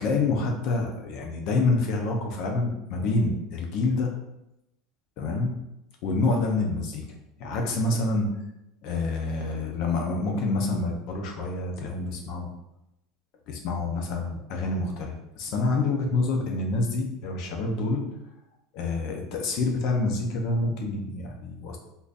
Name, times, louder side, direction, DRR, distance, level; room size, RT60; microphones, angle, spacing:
voice 1, 0.0-4.1 5.2-5.5 6.0-7.1 7.4-8.3 8.8-12.5 13.5-18.0 18.7-21.8, left 3 dB, 45° left, 2 dB, 0.6 m, -27 dB
3.7 x 2.6 x 2.5 m, 0.88 s
cardioid pair, 175°, 0 cm